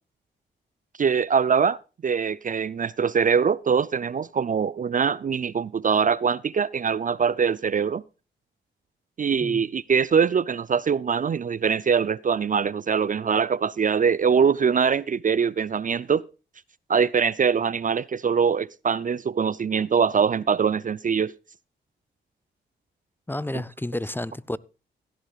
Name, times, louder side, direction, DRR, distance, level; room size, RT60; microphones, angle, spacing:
voice 1, 1.0-8.0 9.2-16.2 16.9-21.3 23.5-23.6, right 6 dB, 40° right, 0.5 m, -23 dB
voice 2, 23.3-24.6, left 1 dB, 10° left, 0.8 m, -31 dB
16.5 x 11.0 x 2.4 m
supercardioid pair, 50°, 21 cm